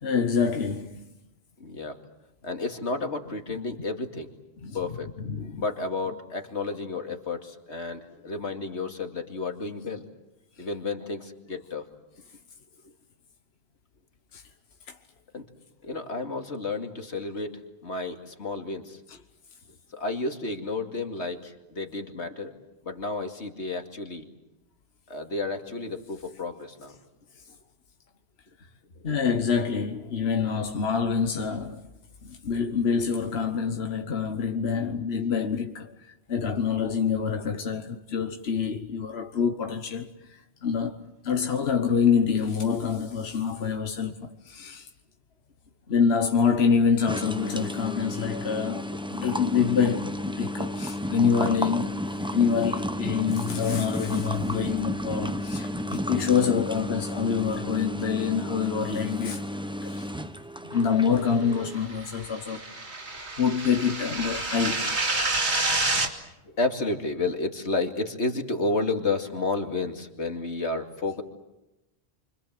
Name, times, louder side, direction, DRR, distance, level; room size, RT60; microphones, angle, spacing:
voice 1, 0.0-1.0 4.6-4.8 5.2-5.6 14.3-14.4 14.9-15.0 29.0-31.9 32.2-44.9 45.9-52.0 52.3-59.5 59.8-60.1 60.6-62.6 63.4-64.9, left 6 dB, 70° left, 1.4 m, -26 dB
voice 2, 1.6-2.0 2.4-4.3 4.7-5.1 5.6-10.1 10.6-11.9 15.3-15.5 15.8-19.0 19.9-22.5 22.8-24.2 25.1-27.0 44.6-44.7 66.4-71.2, left 3 dB, 90° left, 2.7 m, -31 dB
sound 1, 47.1-61.8, equal, 5° right, 0.9 m, -32 dB
sound 2, 61.6-66.1, right 2 dB, 80° right, 2.9 m, -28 dB
30.0 x 25.0 x 7.6 m
omnidirectional pair, 1.1 m